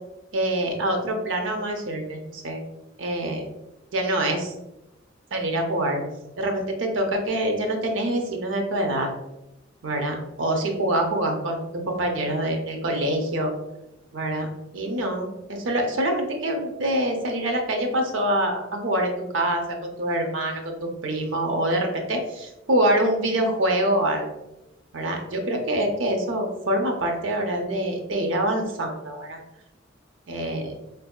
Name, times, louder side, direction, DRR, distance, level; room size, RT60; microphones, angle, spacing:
voice 1, 0.3-2.6 3.0-3.5 3.9-4.5 5.3-6.0 6.4-9.1 9.8-13.5 14.1-24.3 24.9-29.4 30.3-30.7, right 1 dB, 80° right, 3 dB, 0.6 m, -25 dB
4.4 x 2.6 x 2.3 m, 0.94 s
head